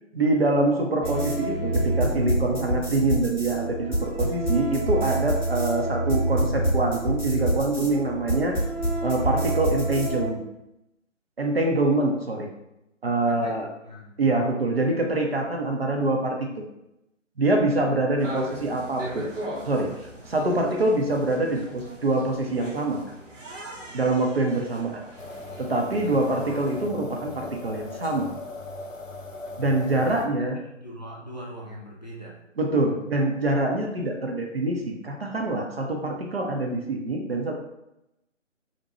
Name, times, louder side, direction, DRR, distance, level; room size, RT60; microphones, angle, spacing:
voice 1, 0.1-8.6 9.0-10.4 11.4-12.5 13.0-13.7 14.2-16.5 17.4-19.3 19.7-19.9 20.3-23.0 23.9-25.0 25.6-28.3 29.6-30.6 32.6-37.5, right 2 dB, 55° right, 1 dB, 0.5 m, -25 dB
sound 1, 1.0-10.3, right 1 dB, ahead, 0.9 m, -26 dB
voice 2, 13.3-14.6 26.0-26.3 30.1-32.4 32.8-32.9, equal, 35° left, -3 dB, 0.4 m, -42 dB
sound 2, 18.2-26.9, right 1 dB, 75° right, 0.9 m, -40 dB
sound 3, 25.2-30.3, left 2 dB, 90° left, 0.6 m, -39 dB
2.6 x 2.1 x 2.9 m, 0.88 s
figure-of-eight pair, 150°, 38 cm